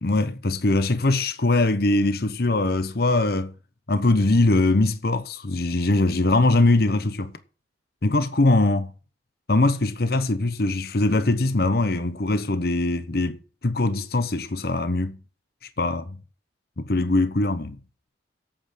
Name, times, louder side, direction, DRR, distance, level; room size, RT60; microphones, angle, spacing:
voice 1, 0.0-3.5 3.9-7.4 8.0-8.9 9.5-15.2 15.8-16.2 16.8-17.8, left 2 dB, 55° left, 0.9 m, -22 dB
8.9 x 7.9 x 7.7 m
head